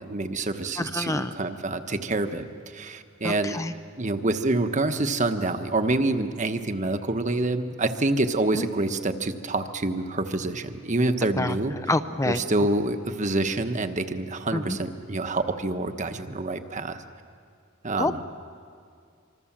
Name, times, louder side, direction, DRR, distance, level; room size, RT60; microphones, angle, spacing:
voice 1, 0.0-3.6 4.0-11.9 12.2-17.0 17.8-18.2, right 2 dB, 40° right, 8 dB, 1.2 m, -27 dB
voice 2, 0.9-1.3 3.2-3.7 8.5-8.6 11.4-11.5 11.9-12.4 14.5-14.6 18.0-18.2, left 2 dB, 15° left, 10 dB, 0.6 m, -26 dB
25.5 x 25.5 x 7.4 m, 2.3 s
head